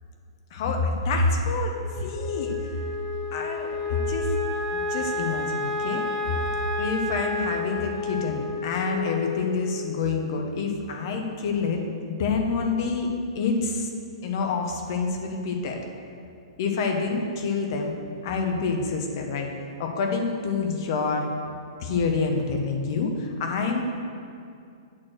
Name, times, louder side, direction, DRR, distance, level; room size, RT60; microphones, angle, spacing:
voice 1, 0.5-2.5 3.3-3.7 4.1-4.3 4.7-6.1 6.8-13.1 13.3-13.9 14.2-15.8 16.6-17.9 18.2-19.5 19.8-21.3 21.8-23.8, left 4 dB, 40° left, 2 dB, 1.0 m, -27 dB
Wind instrument woodwind instrument, 1.9-10.3, left 3 dB, ahead, 1.3 m, -30 dB
8.5 x 4.5 x 6.3 m, 2.4 s
hypercardioid pair, 170°, 3 cm